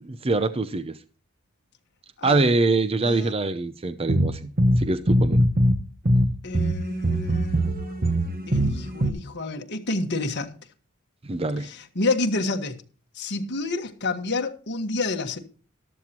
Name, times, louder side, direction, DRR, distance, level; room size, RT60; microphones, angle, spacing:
voice 1, 0.0-1.0 2.2-4.5 4.8-5.5 11.3-11.7, right 3 dB, 25° right, 0.6 m, -24 dB
voice 2, 2.2-2.5 3.0-3.4 6.4-8.0 8.5-10.5 11.6-12.8 13.1-15.4, left 2 dB, 55° left, 1.5 m, -29 dB
sound 1, 4.1-9.1, equal, 40° right, 1.3 m, -21 dB
13.5 x 12.0 x 2.9 m
head